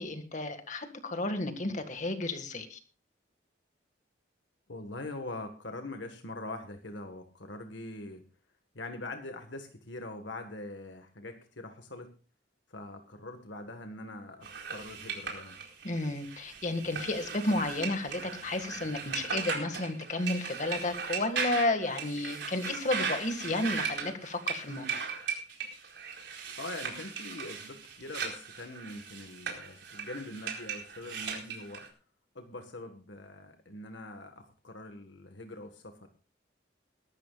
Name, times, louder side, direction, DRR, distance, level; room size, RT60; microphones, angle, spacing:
voice 1, 0.0-2.8 15.8-25.0, left 2 dB, 40° left, 7 dB, 2.0 m, -32 dB
voice 2, 4.7-8.3 8.7-12.1 12.7-15.6 26.6-31.9 32.3-36.1, left 2 dB, 80° left, 5 dB, 1.6 m, -43 dB
sound 1, 14.4-31.9, right 6 dB, 65° right, 4.4 m, -38 dB
22.0 x 12.5 x 2.4 m, 0.35 s
head